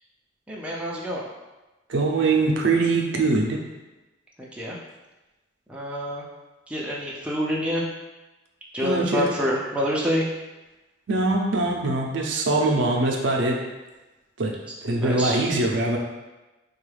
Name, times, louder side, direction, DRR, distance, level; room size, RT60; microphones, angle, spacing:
voice 1, 0.5-1.2 4.4-4.8 5.7-6.2 6.7-7.9 8.7-10.3 15.0-15.4, equal, 5° right, -5 dB, 0.4 m, -27 dB
voice 2, 1.9-3.6 8.8-9.3 11.1-13.6 14.4-14.5 14.8-16.0, right 2 dB, 65° right, 0 dB, 0.5 m, -22 dB
3.9 x 2.3 x 3.2 m, 1.1 s
head